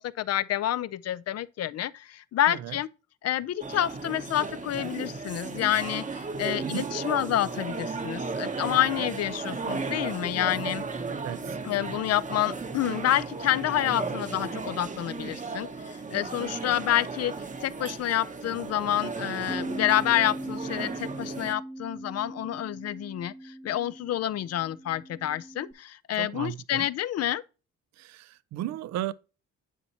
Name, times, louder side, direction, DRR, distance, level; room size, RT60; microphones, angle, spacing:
voice 1, 0.0-2.9 3.2-10.8 11.6-17.3 17.6-27.4, left 12 dB, 55° left, 0.5 m, -28 dB
voice 2, 2.5-2.8 6.6-6.9 11.1-11.6 26.2-26.9 27.9-29.1, right 12 dB, 65° right, 0.5 m, -35 dB
sound 1, 3.6-21.5, right 4 dB, 25° right, 0.8 m, -35 dB
Bass guitar, 19.5-25.7, right 1 dB, 5° right, 0.4 m, -40 dB
9.9 x 4.2 x 2.8 m
cardioid pair, 90°, 30 cm